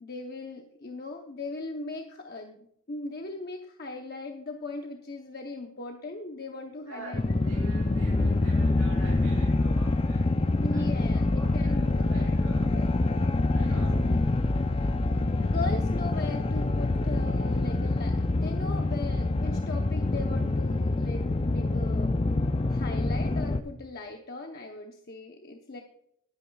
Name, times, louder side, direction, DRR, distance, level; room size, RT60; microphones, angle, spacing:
voice 1, 0.0-2.6 2.9-7.3 10.6-12.4 12.7-12.9 13.6-13.8 15.5-22.1 22.7-25.8, left 3 dB, 45° left, 3 dB, 0.8 m, -39 dB
voice 2, 6.8-10.4 10.7-12.7 13.4-14.0, right 2 dB, 90° right, -5 dB, 5.2 m, -46 dB
sound 1, 7.1-23.6, left 2 dB, 25° left, 0.4 m, -26 dB
19.5 x 9.0 x 2.3 m, 0.70 s
head